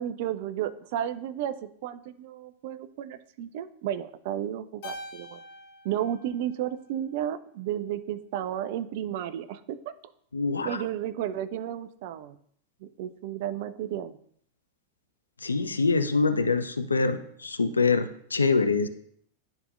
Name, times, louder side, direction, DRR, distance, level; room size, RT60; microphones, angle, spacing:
voice 1, 0.0-5.4 5.8-9.8 10.6-12.4 12.8-14.2, right 11 dB, 50° right, 12 dB, 0.4 m, -33 dB
Keyboard (musical), 4.8-7.3, left 1 dB, 50° left, 2.6 m, -45 dB
voice 2, 10.3-10.7 15.4-18.9, left 4 dB, 75° left, 10 dB, 0.5 m, -25 dB
10.0 x 4.1 x 2.5 m, 0.66 s
figure-of-eight pair, 90°, 0 cm